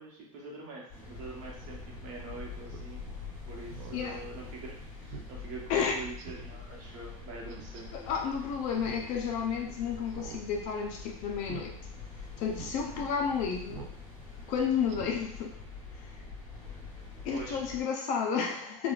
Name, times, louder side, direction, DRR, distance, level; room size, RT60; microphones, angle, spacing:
voice 1, 0.0-3.0 3.5-7.9 12.8-13.1 17.3-17.6, right 3 dB, 40° right, -2 dB, 0.9 m, -44 dB
sound 1, 0.9-17.8, left 4 dB, 10° left, 1.4 m, -45 dB
Speech synthesizer, 2.7-2.9 3.3-3.4 3.7-4.0 4.4-4.5 5.1-5.3 5.7-5.8 6.2-6.5 7.5-7.8 8.7-9.1 9.4-9.5 10.1-10.4 10.7-10.9 11.4-11.7 12.1-12.2 12.5-12.7 13.7-14.0 14.3-14.4 14.9-15.2 15.6-15.7, right 7 dB, 60° right, 0.5 m, -45 dB
voice 2, 7.9-11.7 12.4-13.9 14.5-15.6 15.9-16.1 17.2-18.9, left 6 dB, 40° left, 1 dB, 0.5 m, -31 dB
3.6 x 2.3 x 2.4 m, 0.69 s
supercardioid pair, 150°, 19 cm